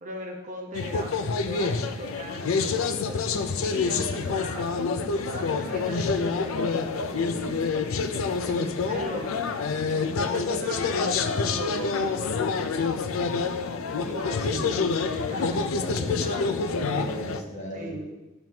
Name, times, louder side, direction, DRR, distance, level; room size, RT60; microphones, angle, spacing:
voice 1, 0.0-4.8 5.2-7.9 8.5-9.4 10.3-12.7 14.0-15.6 15.9-16.5 17.7-18.1, right 1 dB, 40° right, 1 dB, 1.0 m, -39 dB
sound 1, 0.7-17.4, left 4 dB, 80° left, 0.5 m, -27 dB
voice 2, 15.3-17.9, left 1 dB, 35° left, -4 dB, 1.7 m, -36 dB
8.8 x 7.5 x 2.8 m, 1.1 s
head